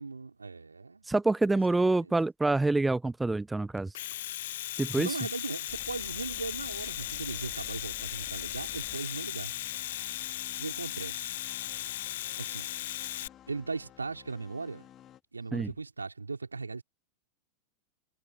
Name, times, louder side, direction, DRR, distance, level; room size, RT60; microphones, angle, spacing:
voice 1, 0.0-1.1 2.0-2.1 4.5-9.5 10.6-11.5 12.4-12.7 13.5-14.9 15.3-16.8, right 4 dB, 80° right, 5.2 m, -38 dB
voice 2, 1.1-3.9 4.8-5.1 15.5-15.7, right 2 dB, 10° right, 0.4 m, -26 dB
Domestic sounds home sounds, 3.8-13.3, left 14 dB, 55° left, 0.6 m, -37 dB
sound 1, 5.7-15.2, left 11 dB, 30° left, 3.9 m, -53 dB
figure-of-eight pair, 90°, 0 cm